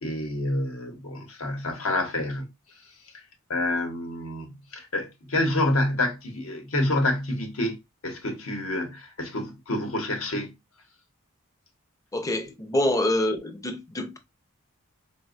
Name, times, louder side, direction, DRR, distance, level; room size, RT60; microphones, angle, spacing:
voice 1, 0.0-2.5 3.1-3.2 3.5-7.8 8.0-10.5, left 1 dB, 70° left, 0.9 m, -28 dB
voice 2, 12.1-14.2, left 1 dB, 15° left, 0.4 m, -26 dB
4.1 x 2.2 x 2.4 m
head